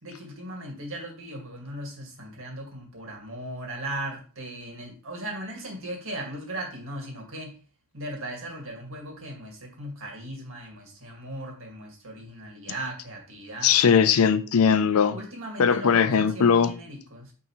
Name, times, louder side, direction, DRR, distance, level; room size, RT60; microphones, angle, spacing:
voice 1, 0.0-7.6 7.9-13.7 15.1-17.3, right 1 dB, 60° right, 2.0 m, -37 dB
voice 2, 13.6-15.2 15.6-16.7, left 7 dB, 70° left, 0.5 m, -20 dB
8.7 x 3.5 x 3.1 m
head